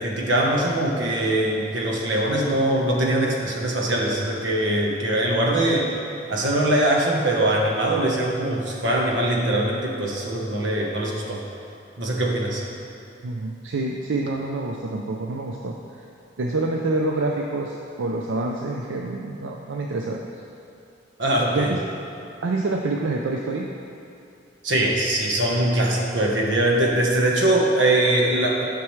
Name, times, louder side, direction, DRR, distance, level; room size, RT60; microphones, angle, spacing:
voice 1, 0.0-5.9 6.3-11.4 12.0-12.6 21.2-21.7 24.6-28.6, right 1 dB, 70° right, -1 dB, 1.1 m, -22 dB
voice 2, 13.2-15.7 16.4-20.2 21.5-21.8 22.4-23.7, right 2 dB, 90° right, 1 dB, 0.5 m, -27 dB
10.5 x 5.9 x 3.2 m, 2.6 s
head